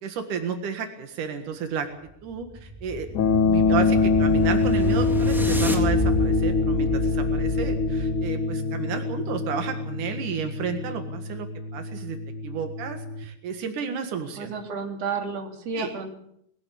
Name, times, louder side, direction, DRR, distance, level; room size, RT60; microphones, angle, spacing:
voice 1, 0.0-1.9 2.2-3.1 3.4-11.5 11.7-12.2 12.4-14.5 15.7-15.9, right 7 dB, 85° right, 6 dB, 3.3 m, -32 dB
sound 1, 2.1-8.4, equal, ahead, 3.1 m, -30 dB
sound 2, 3.1-13.2, left 4 dB, 85° left, 3.3 m, -25 dB
sound 3, 5.7-11.2, left 5 dB, 50° left, 1.9 m, -34 dB
voice 2, 14.4-16.1, right 4 dB, 55° right, 4 dB, 3.8 m, -31 dB
21.5 x 16.0 x 8.5 m, 0.71 s
omnidirectional pair, 3.5 m